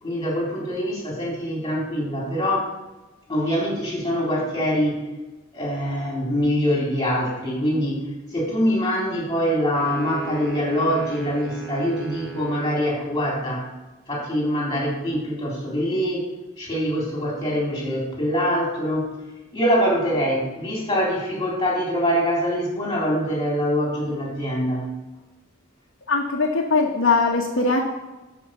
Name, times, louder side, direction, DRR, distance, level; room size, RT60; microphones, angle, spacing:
voice 1, 0.0-2.7 3.3-5.1 5.5-8.0 8.3-13.7 14.1-16.3 16.6-19.2 19.5-24.9, equal, 20° left, -2 dB, 3.4 m, -24 dB
sound 1, 9.7-13.1, right 6 dB, 10° right, 2.5 m, -37 dB
voice 2, 26.1-27.8, left 3 dB, 60° left, -2 dB, 1.2 m, -20 dB
11.5 x 5.0 x 6.4 m, 1.1 s
head